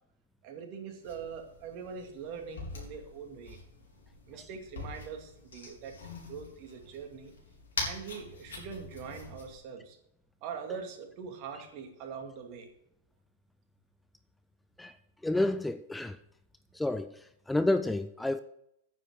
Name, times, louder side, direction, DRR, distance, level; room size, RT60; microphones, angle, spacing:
voice 1, 0.4-3.6 4.3-5.9 6.3-7.3 7.8-10.0 10.4-12.7, right 6 dB, 45° right, 2.5 m, -43 dB
sound 1, 1.0-9.6, left 3 dB, 80° left, 4.0 m, -43 dB
voice 2, 15.2-16.2 16.7-18.4, left 2 dB, 5° left, 0.5 m, -30 dB
9.6 x 7.4 x 6.5 m
hypercardioid pair, 110°, 0 cm